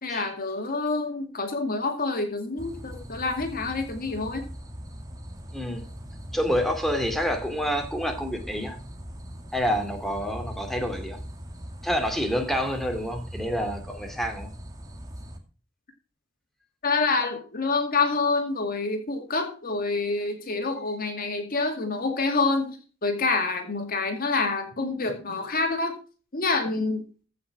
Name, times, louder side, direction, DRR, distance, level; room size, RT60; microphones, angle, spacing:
voice 1, 0.0-4.5 16.8-25.9 26.3-27.0, left 3 dB, 50° left, 5 dB, 2.3 m, -27 dB
sound 1, 2.6-15.4, equal, 20° right, 2.1 m, -40 dB
voice 2, 5.5-5.8 6.3-8.8 9.5-11.2 11.8-14.5, equal, ahead, 4 dB, 2.5 m, -28 dB
15.5 x 5.9 x 6.0 m, 0.37 s
head